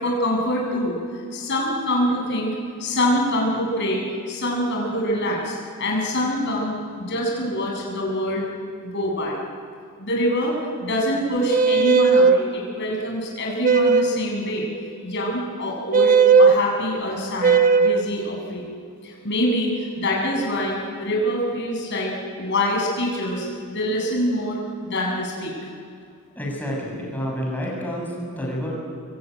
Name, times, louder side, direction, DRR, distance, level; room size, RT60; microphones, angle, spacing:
voice 1, 0.0-8.5 8.8-9.4 10.0-14.7 15.0-18.7 19.0-25.5, left 1 dB, 55° left, -1 dB, 7.2 m, -25 dB
sound 1, 11.5-12.4 13.6-14.2 15.9-16.6 17.4-18.1, right 5 dB, 40° right, 1.1 m, -16 dB
voice 2, 26.4-28.7, equal, 10° left, -2 dB, 7.4 m, -29 dB
27.0 x 23.0 x 9.4 m, 2.2 s
head